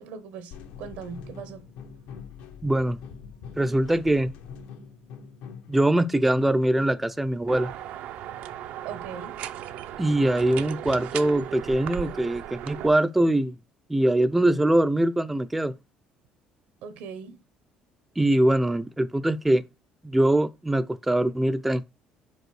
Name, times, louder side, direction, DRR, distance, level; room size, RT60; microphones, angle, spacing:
voice 1, 0.0-1.7 8.8-9.4 16.8-17.4, right 6 dB, 80° right, 1.1 m, -39 dB
sound 1, 0.5-7.2, left 6 dB, 85° left, 1.2 m, -44 dB
voice 2, 2.6-3.0 3.6-4.3 5.7-7.7 10.0-13.6 13.9-15.7 18.2-19.6 20.0-21.8, right 1 dB, 5° right, 0.3 m, -22 dB
sound 2, 7.5-12.9, right 11 dB, 65° right, 0.5 m, -36 dB
5.3 x 4.5 x 6.2 m
cardioid pair, 155°, 3 cm